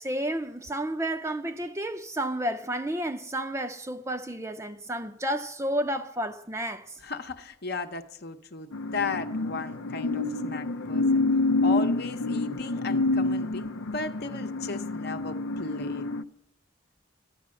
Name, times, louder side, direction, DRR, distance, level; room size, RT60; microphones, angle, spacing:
voice 1, 0.0-7.0, right 1 dB, 15° right, 0.6 m, -31 dB
voice 2, 7.0-11.3 11.6-16.1, left 4 dB, 55° left, 0.9 m, -35 dB
sound 1, 8.7-16.2, left 2 dB, 85° left, 0.6 m, -28 dB
14.5 x 11.0 x 7.6 m
head